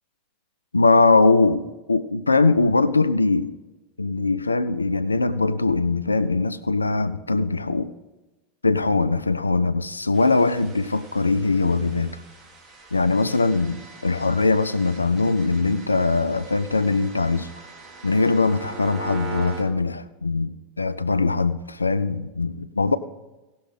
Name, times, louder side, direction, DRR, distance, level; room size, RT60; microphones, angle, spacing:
voice 1, 0.7-3.5 4.0-7.9 8.6-12.2 12.9-17.5 18.0-23.0, left 3 dB, 85° left, 14 dB, 0.4 m, -21 dB
sound 1, 10.1-19.6, right 5 dB, 25° right, 3.0 m, -41 dB
17.5 x 6.3 x 4.2 m, 1.1 s
figure-of-eight pair, 80°, 0 cm